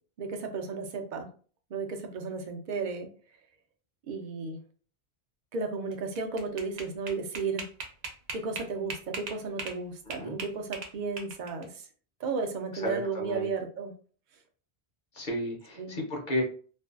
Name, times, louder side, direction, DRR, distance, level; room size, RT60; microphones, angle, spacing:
voice 1, 0.2-1.3 1.7-3.1 4.1-4.6 5.5-7.6 8.3-11.8 12.2-13.9 15.8-15.9, right 4 dB, 55° right, 4 dB, 0.6 m, -34 dB
sound 1, 5.9-9.8 10.1-11.6, right 4 dB, 85° right, 0.9 m, -39 dB
voice 2, 12.7-13.5 15.1-16.4, left 1 dB, 55° left, 0 dB, 0.8 m, -33 dB
2.5 x 2.2 x 2.3 m, 0.42 s
omnidirectional pair, 1.0 m